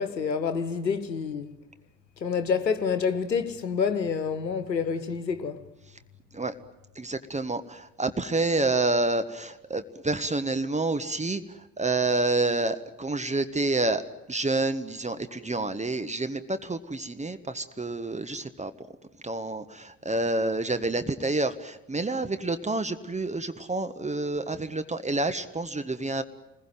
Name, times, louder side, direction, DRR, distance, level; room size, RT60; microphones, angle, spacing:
voice 1, 0.0-1.5 2.2-5.6, left 6 dB, 85° left, 1.3 m, -28 dB
voice 2, 6.9-14.0 14.3-18.7 19.2-26.2, right 2 dB, 15° right, 1.5 m, -28 dB
28.5 x 21.0 x 9.3 m
figure-of-eight pair, 55°, 49 cm